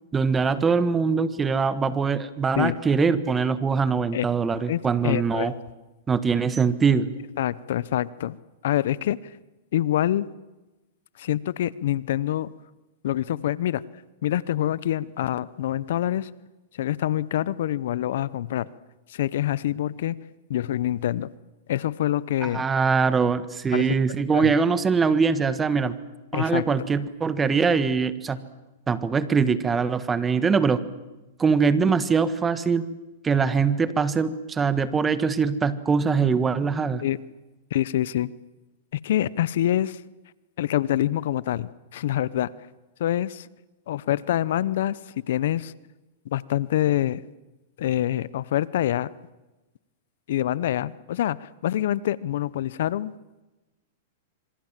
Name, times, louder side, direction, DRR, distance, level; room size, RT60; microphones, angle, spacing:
voice 1, 0.1-5.5 6.1-7.2 22.4-25.9 26.3-28.4 28.9-30.8 31.4-32.9 33.2-37.0, right 5 dB, 15° right, 14 dB, 1.5 m, -22 dB
voice 2, 4.7-5.5 7.4-8.4 8.6-9.2 9.7-10.3 11.2-12.5 13.0-13.8 14.2-16.3 16.7-18.7 19.1-20.2 20.5-21.3 21.7-22.6 23.7-23.9 24.3-24.5 26.3-26.6 37.0-37.2 37.7-38.3 38.9-40.0 40.6-42.5 43.0-43.5 43.9-45.7 46.3-47.2 47.8-49.1 50.3-53.1, left 12 dB, 70° left, 20 dB, 0.8 m, -26 dB
26.5 x 24.5 x 7.5 m, 1.1 s
hypercardioid pair, 130°, 0 cm